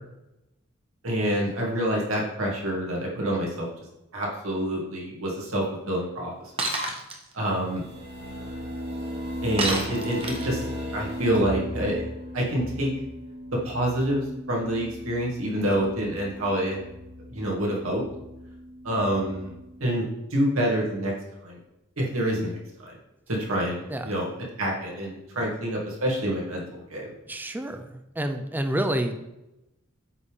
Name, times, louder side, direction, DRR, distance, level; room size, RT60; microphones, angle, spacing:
voice 1, 1.0-3.7 4.1-6.5 7.3-7.8 9.4-10.6 10.9-12.0 12.3-12.9 13.5-16.9 17.3-18.0 18.8-19.5 19.8-21.1 21.4-21.6 22.0-22.9 23.3-24.3 24.6-27.1, right 1 dB, 85° right, -2 dB, 2.0 m, -27 dB
Shatter, 6.6-7.2 9.6-10.6, right 2 dB, 30° right, 1.0 m, -28 dB
sound 1, 7.5-19.8, equal, 55° right, 2.0 m, -37 dB
voice 2, 27.3-29.2, right 1 dB, 10° right, 6 dB, 0.4 m, -29 dB
8.2 x 3.6 x 5.0 m, 0.93 s
head